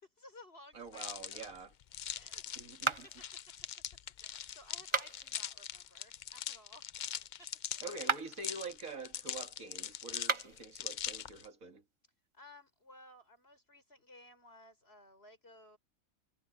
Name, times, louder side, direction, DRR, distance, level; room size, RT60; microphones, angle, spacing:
voice 1, 0.0-1.5 2.1-2.6 3.0-3.1 4.2-6.8 7.4-8.1 10.1-10.3 12.3-15.8, left 1 dB, 45° left, 6.0 m, -58 dB
voice 2, 0.7-1.7 2.6-3.1 7.8-11.8, right 3 dB, 75° right, 2.5 m, -46 dB
sound 1, 0.9-11.5, left 9 dB, 85° left, 0.4 m, -42 dB
sound 2, 2.8-3.3 4.8-5.4 7.9-8.5 10.2-10.7, right 5 dB, 35° right, 0.5 m, -35 dB
omnidirectional pair, 1.4 m